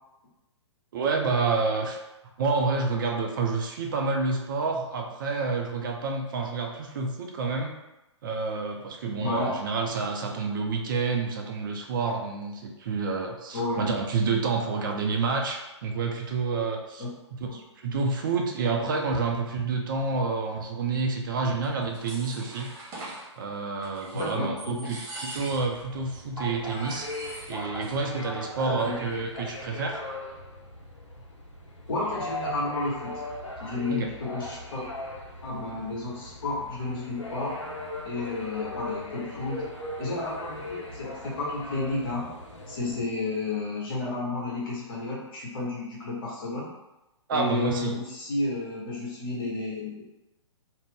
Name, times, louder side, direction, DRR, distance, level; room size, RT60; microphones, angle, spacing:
voice 1, 0.9-2.0 2.4-7.7 8.2-17.0 17.5-22.7 23.4-27.1 27.5-30.0 33.9-34.1 47.3-48.0, right 4 dB, 45° right, 2 dB, 0.4 m, -28 dB
voice 2, 9.2-9.5 13.5-14.0 17.0-17.1 17.5-17.6 24.1-24.9 28.6-29.0 31.9-33.2 33.6-34.8 35.4-37.6 38.0-39.7 40.0-42.3 42.7-46.7 47.3-49.9, left 2 dB, 50° left, -5 dB, 1.1 m, -31 dB
sound 1, 21.6-23.3 23.8-24.3 24.6-25.8 26.1-26.2 26.6-28.0 28.2-28.3 28.6-29.1, right 2 dB, 25° right, 0.9 m, -42 dB
sound 2, 25.5-43.0, left 2 dB, 85° left, 0.6 m, -39 dB
2.4 x 2.0 x 3.5 m, 0.96 s
figure-of-eight pair, 120°, 16 cm